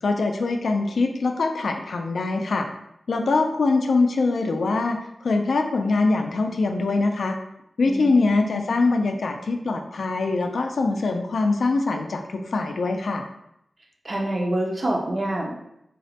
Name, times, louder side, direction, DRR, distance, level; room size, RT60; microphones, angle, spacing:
voice 1, 0.0-2.7 3.1-7.4 7.8-13.2, left 3 dB, 75° left, 4 dB, 0.3 m, -23 dB
voice 2, 7.9-8.6 14.0-15.5, right 1 dB, 35° right, -1 dB, 0.4 m, -27 dB
3.9 x 2.1 x 2.7 m, 0.79 s
wide cardioid pair, 130°, 0 cm